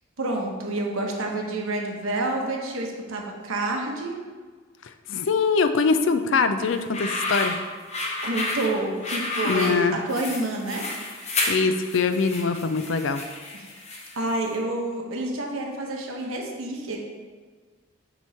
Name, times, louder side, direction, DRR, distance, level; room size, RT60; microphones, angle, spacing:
voice 1, 0.2-4.2 8.2-10.9 13.5-13.6 14.2-17.1, right 2 dB, 85° right, 0 dB, 1.1 m, -28 dB
voice 2, 5.1-7.6 9.4-10.0 11.5-13.2, left 4 dB, 65° left, 9 dB, 0.4 m, -23 dB
sound 1, 6.7-14.3, left 2 dB, 30° left, 0.9 m, -30 dB
7.6 x 3.1 x 5.6 m, 1.5 s
head